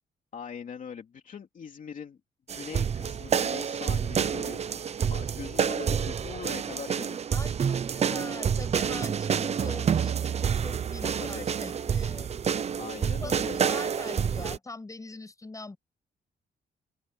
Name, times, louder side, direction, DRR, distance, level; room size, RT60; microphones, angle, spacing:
voice 1, 0.3-2.2 2.5-7.3 11.0-11.4 12.8-13.6, left 7 dB, 50° left, 3.1 m, -42 dB
sound 1, 2.5-14.6, right 7 dB, 40° right, 0.6 m, -28 dB
voice 2, 7.3-12.3 13.0-15.8, left 3 dB, 20° left, 7.0 m, -43 dB
open air
cardioid pair, 140°, 17 cm